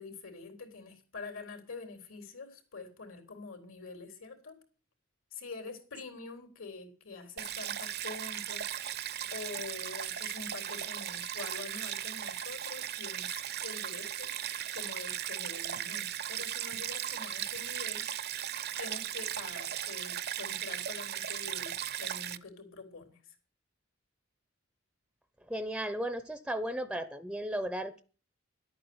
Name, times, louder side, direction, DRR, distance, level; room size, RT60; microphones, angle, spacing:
voice 1, 0.0-4.6 5.3-8.7 9.3-14.3 14.7-18.1 18.7-23.4, left 4 dB, 80° left, 3.8 m, -45 dB
Stream, 7.4-22.4, right 10 dB, 50° right, 0.7 m, -37 dB
voice 2, 25.5-28.0, right 1 dB, 5° right, 0.6 m, -35 dB
11.5 x 8.7 x 7.9 m
head